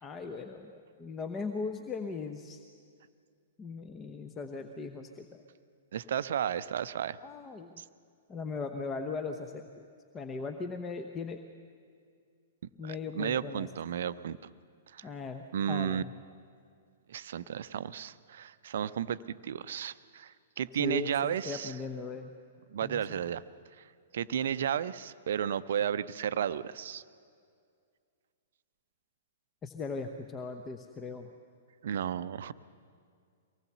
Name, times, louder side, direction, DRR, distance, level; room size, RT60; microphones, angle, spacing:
voice 1, 0.0-2.6 3.6-5.4 7.2-7.8 8.3-9.9 10.1-11.4 12.8-13.7 15.0-16.1 20.8-22.3 22.8-23.2 29.6-31.3, left 4 dB, 20° left, 6 dB, 0.9 m, -38 dB
voice 2, 5.9-7.2 7.8-7.9 12.8-14.4 14.9-15.1 15.5-16.0 17.1-21.7 22.7-23.4 23.8-23.9 24.1-27.0 31.8-32.5, right 9 dB, 55° right, 16 dB, 0.6 m, -33 dB
24.0 x 18.5 x 6.8 m, 2.2 s
figure-of-eight pair, 110°, 0 cm